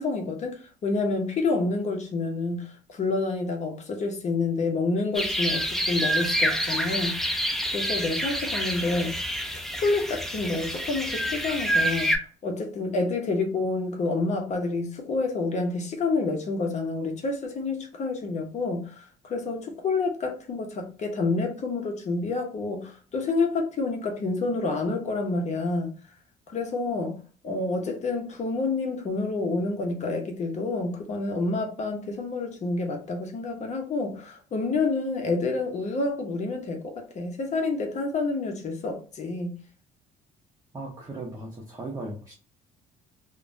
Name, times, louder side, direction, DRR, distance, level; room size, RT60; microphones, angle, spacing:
voice 1, 0.0-9.2 9.5-12.1 12.4-25.9 26.5-27.2 27.4-39.5, left 3 dB, 45° left, 0.8 m, -28 dB
sound 1, 5.1-12.2, equal, ahead, 0.5 m, -27 dB
voice 2, 40.7-42.3, right 2 dB, 20° right, 0.8 m, -37 dB
3.1 x 2.2 x 2.5 m
cardioid pair, 110°, 17 cm